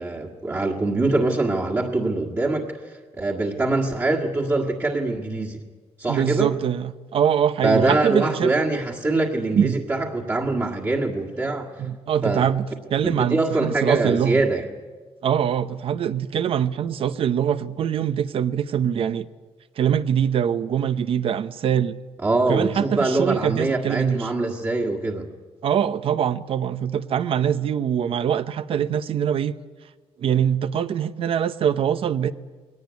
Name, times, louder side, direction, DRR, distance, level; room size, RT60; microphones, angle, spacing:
voice 1, 0.0-5.6 6.0-6.5 7.6-11.7 12.2-12.5 13.0-14.7 22.2-25.3, right 2 dB, 25° right, 1.8 m, -23 dB
voice 2, 6.1-8.5 9.5-9.9 11.8-14.4 15.2-19.3 19.8-22.0 22.5-24.3 25.6-29.6 30.2-32.3, right 9 dB, 55° right, 0.7 m, -23 dB
21.0 x 18.0 x 9.4 m
wide cardioid pair, 165°, 11 cm